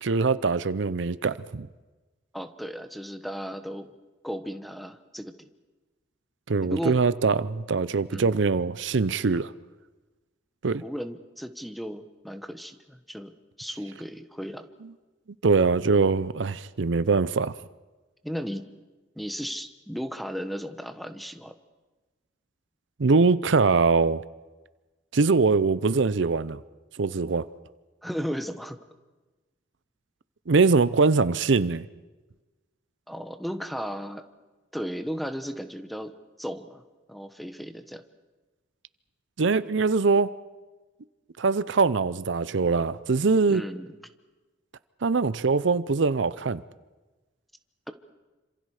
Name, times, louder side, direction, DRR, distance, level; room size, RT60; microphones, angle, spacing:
voice 1, 0.0-1.7 6.5-9.5 10.6-10.8 15.4-17.5 23.0-24.2 25.1-26.6 27.0-27.5 30.5-31.8 39.4-40.3 41.4-43.6 45.0-46.6, right 4 dB, 70° right, 0.6 m, -22 dB
voice 2, 2.3-3.9 4.2-5.3 6.6-7.0 8.1-8.3 10.8-13.3 13.6-14.7 18.2-18.7 19.2-21.5 28.0-28.8 33.1-34.2 34.7-36.1 36.4-36.8 37.1-38.0 43.5-44.0, equal, ahead, 1.2 m, -35 dB
27.5 x 26.5 x 4.9 m
head